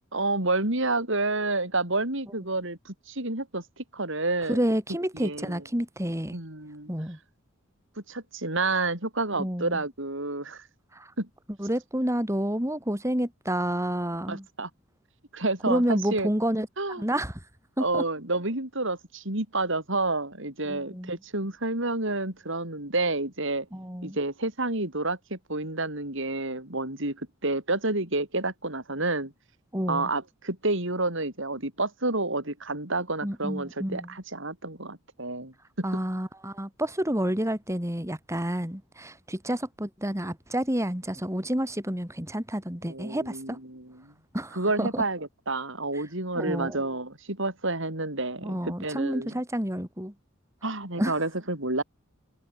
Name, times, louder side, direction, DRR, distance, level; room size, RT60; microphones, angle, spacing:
voice 1, 0.1-4.6 5.1-5.6 6.3-6.9 8.1-10.6 11.2-11.3 14.3-14.7 15.3-16.3 16.8-17.0 17.8-23.7 24.0-29.3 29.9-35.9 42.8-44.1 44.5-49.4 50.6-51.8, right 2 dB, 65° right, 6.7 m, -29 dB
voice 2, 4.5-6.4 6.9-7.2 9.3-9.8 10.9-11.1 11.6-14.5 15.7-16.7 17.0-17.4 17.8-18.0 20.7-21.2 23.7-24.2 29.7-30.1 33.2-34.1 35.8-43.6 44.3-45.0 46.4-46.8 48.4-50.1 51.0-51.2, equal, 15° right, 5.3 m, -29 dB
head